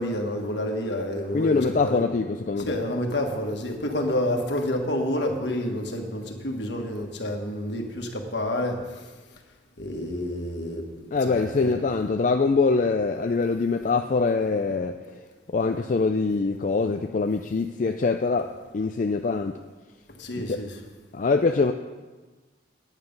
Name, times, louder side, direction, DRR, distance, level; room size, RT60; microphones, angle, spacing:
voice 1, 0.0-2.0 2.6-9.0 9.8-10.9 11.2-11.7 20.2-20.8, left 1 dB, 70° left, 2 dB, 1.5 m, -29 dB
voice 2, 1.3-2.8 11.1-15.0 15.5-19.5 20.5-20.6 21.1-21.7, left 4 dB, 45° left, 5 dB, 0.4 m, -24 dB
9.7 x 9.2 x 5.4 m, 1.3 s
head